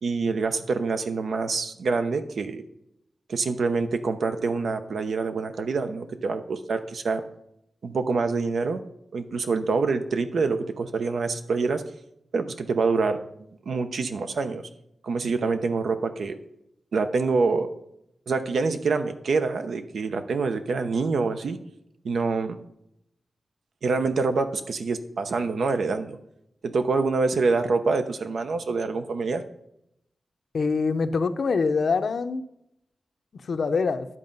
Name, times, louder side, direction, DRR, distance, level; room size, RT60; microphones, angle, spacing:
voice 1, 0.0-2.6 3.3-7.2 7.8-8.8 9.1-11.8 12.3-13.2 13.7-14.6 15.0-16.4 16.9-17.7 18.3-21.6 22.0-22.6 23.8-26.2 26.6-29.4, right 4 dB, 75° right, 8 dB, 0.8 m, -26 dB
voice 2, 30.5-32.4 33.4-34.1, left 4 dB, 60° left, 10 dB, 0.6 m, -24 dB
11.0 x 7.5 x 5.4 m, 0.80 s
wide cardioid pair, 135°, 0 cm